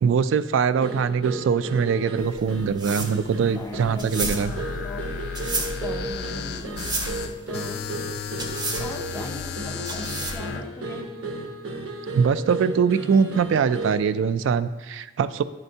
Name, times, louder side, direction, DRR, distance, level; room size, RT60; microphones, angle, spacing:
voice 1, 0.0-4.5 12.1-15.4, right 6 dB, 70° right, 13 dB, 0.3 m, -22 dB
sound 1, 0.8-14.1, right 2 dB, 90° right, 1.1 m, -34 dB
sound 2, 2.2-10.6, right 2 dB, 20° right, 0.7 m, -33 dB
voice 2, 3.5-6.9 7.5-7.8 8.4-11.3 13.1-13.2 13.5-13.8, left 2 dB, 15° left, 2 dB, 0.6 m, -40 dB
sound 3, 4.4-10.6, left 7 dB, 55° left, 0.3 m, -34 dB
10.5 x 4.4 x 2.7 m, 1.1 s
head